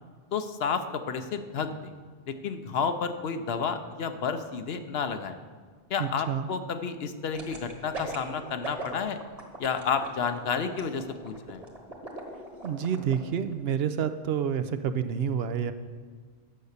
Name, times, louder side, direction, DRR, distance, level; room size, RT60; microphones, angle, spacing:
voice 1, 0.3-1.9 2.3-5.4 5.9-9.2 9.6-11.6, left 6 dB, 70° left, 9 dB, 0.9 m, -31 dB
voice 2, 6.0-6.5 12.6-15.7, right 8 dB, 75° right, 11 dB, 0.8 m, -28 dB
sound 1, 7.3-13.1 13.5-13.6, right 2 dB, 35° right, 1.5 m, -39 dB
9.7 x 6.8 x 6.5 m, 1.6 s
omnidirectional pair, 1.1 m